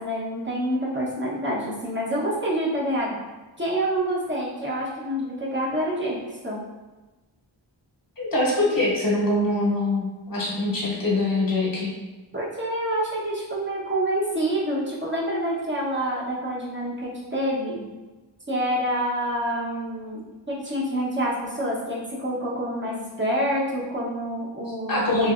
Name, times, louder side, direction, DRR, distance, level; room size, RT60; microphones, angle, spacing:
voice 1, 0.0-3.2 3.6-6.2 6.4-6.6 12.3-17.8 18.5-20.2 20.5-25.3, right 1 dB, 25° right, -6 dB, 0.9 m, -27 dB
voice 2, 8.2-11.9 24.9-25.3, left 2 dB, 45° left, -4 dB, 1.0 m, -23 dB
3.3 x 2.6 x 2.4 m, 1.2 s
wide cardioid pair, 55°, 45 cm